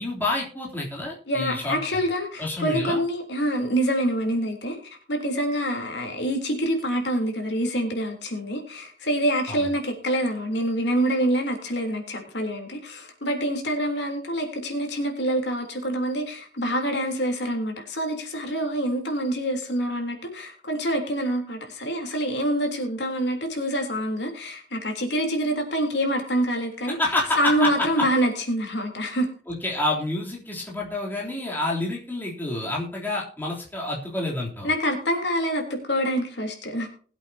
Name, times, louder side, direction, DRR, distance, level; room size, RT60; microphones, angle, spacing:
voice 1, 0.0-2.0 2.4-3.0 9.5-9.7 26.9-28.0 29.5-34.7, left 2 dB, 10° left, -3 dB, 3.3 m, -28 dB
voice 2, 1.3-27.0 27.4-29.3 34.6-36.9, equal, 70° left, 3 dB, 3.5 m, -26 dB
20.5 x 8.3 x 2.8 m, 0.42 s
head